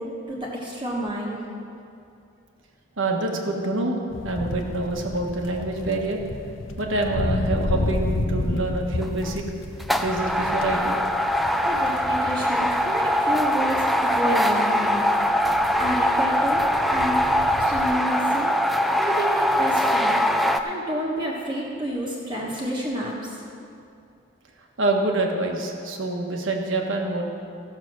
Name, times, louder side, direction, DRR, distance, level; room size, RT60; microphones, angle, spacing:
voice 1, 0.0-1.4 11.6-15.1 15.8-16.6 16.9-17.2 17.6-18.6 19.0-20.2 20.6-23.1, equal, 25° right, -4 dB, 1.3 m, -29 dB
voice 2, 3.0-6.2 6.8-9.4 10.0-11.0 24.8-27.3, right 2 dB, 75° right, 1 dB, 1.4 m, -26 dB
sound 1, 4.1-13.9 14.8-18.0, left 2 dB, 75° left, 0.7 m, -32 dB
sound 2, 9.0-9.3 9.8-20.6, equal, ahead, 0.3 m, -22 dB
15.0 x 6.7 x 6.1 m, 2.5 s
head